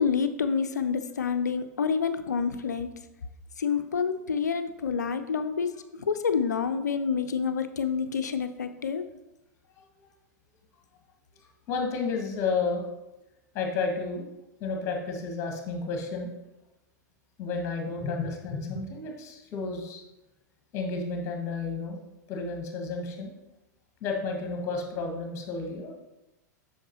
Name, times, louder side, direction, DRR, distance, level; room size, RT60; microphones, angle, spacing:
voice 1, 0.0-2.9 3.6-9.0, left 6 dB, 70° left, 10 dB, 0.5 m, -28 dB
voice 2, 11.7-12.8 13.5-14.3 14.6-16.3 17.4-20.0 20.7-22.0 22.3-23.3 24.0-25.9, left 4 dB, 30° left, 2 dB, 1.6 m, -31 dB
7.8 x 6.4 x 2.9 m, 0.97 s
figure-of-eight pair, 95°, 10 cm